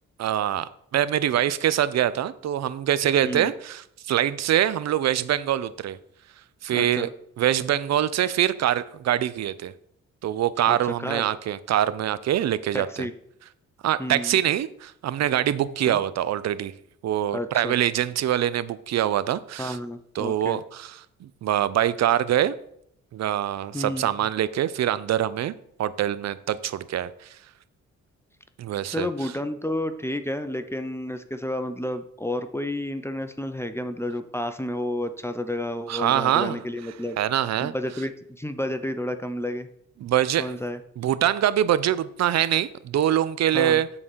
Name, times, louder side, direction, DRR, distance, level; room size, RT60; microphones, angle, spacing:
voice 1, 0.2-6.0 6.6-7.1 7.4-9.7 10.2-13.1 13.8-16.7 17.0-19.8 20.1-22.5 23.1-25.5 25.8-27.1 28.6-29.1 35.9-36.6 37.2-37.7 40.0-40.5 41.0-43.9, right 11 dB, 60° right, 16 dB, 0.6 m, -24 dB
voice 2, 6.7-7.1 10.7-11.2 12.7-13.1 14.0-14.4 15.9-16.0 17.3-17.7 19.6-20.6 23.7-24.1 28.9-37.2 37.6-39.7 40.4-40.8 43.5-43.8, left 1 dB, 10° left, 9 dB, 0.7 m, -31 dB
7.6 x 4.0 x 6.1 m, 0.72 s
supercardioid pair, 60°, 31 cm